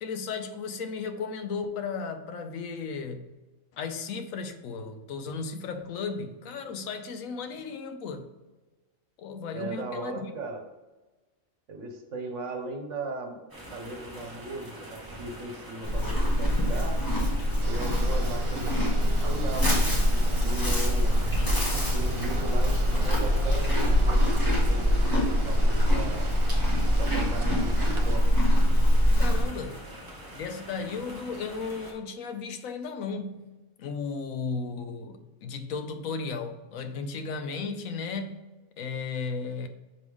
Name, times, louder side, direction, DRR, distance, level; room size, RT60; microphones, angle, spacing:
voice 1, 0.0-3.3 3.7-8.3 9.2-10.3 29.2-29.9 30.3-33.5 33.8-38.4 38.8-39.7, left 5 dB, 75° left, 1.0 m, -35 dB
voice 2, 9.5-10.6 11.7-13.4 13.7-17.0 17.7-21.2 21.9-26.4 27.0-28.3, right 2 dB, 65° right, 1.3 m, -38 dB
sound 1, 13.5-31.9, right 1 dB, 15° right, 1.0 m, -45 dB
Livestock farm animals working animals, 15.8-29.4, equal, 15° left, 1.6 m, -24 dB
sound 2, 17.6-28.2, right 3 dB, 50° right, 0.3 m, -41 dB
6.0 x 4.8 x 3.5 m
omnidirectional pair, 1.4 m